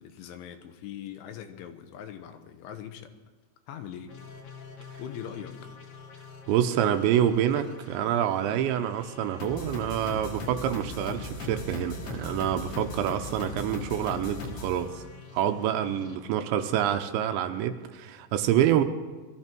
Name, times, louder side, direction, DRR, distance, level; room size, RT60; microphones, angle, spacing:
voice 1, 0.0-3.1 3.7-4.2 5.0-5.7, left 9 dB, 80° left, 8 dB, 3.5 m, -41 dB
sound 1, 4.1-16.2, left 3 dB, 65° left, 2.0 m, -40 dB
voice 2, 6.5-15.0 15.3-18.8, right 10 dB, 80° right, 7 dB, 3.0 m, -27 dB
22.0 x 14.0 x 4.5 m, 1.3 s
omnidirectional pair, 5.5 m